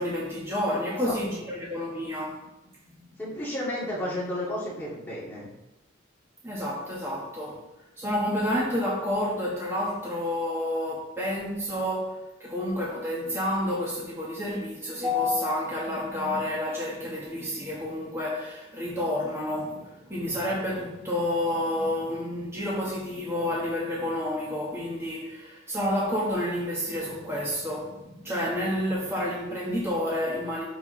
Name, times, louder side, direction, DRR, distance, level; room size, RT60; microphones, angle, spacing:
voice 1, 0.0-2.4 6.4-7.6 8.0-30.6, left 1 dB, 15° right, 1.6 m, -29 dB
voice 2, 0.9-1.2 3.2-5.5, left 1 dB, 10° left, 2.5 m, -32 dB
12.0 x 4.8 x 3.3 m
head